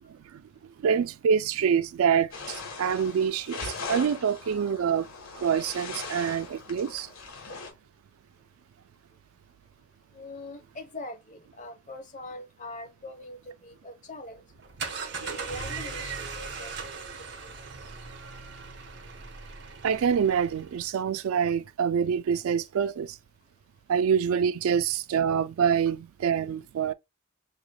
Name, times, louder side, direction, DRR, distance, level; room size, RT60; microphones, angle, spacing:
voice 1, 0.8-5.1 5.4-7.1 15.3-15.4 19.8-23.2 23.9-26.9, right 7 dB, 90° right, 0.3 m, -26 dB
sound 1, 2.3-7.7, left 4 dB, 80° left, 1.8 m, -39 dB
voice 2, 10.1-14.4 15.1-16.7 17.4-17.5, left 1 dB, 35° left, 1.0 m, -42 dB
sound 2, 14.5-20.9, right 5 dB, 55° right, 0.7 m, -39 dB
4.9 x 3.1 x 2.2 m
head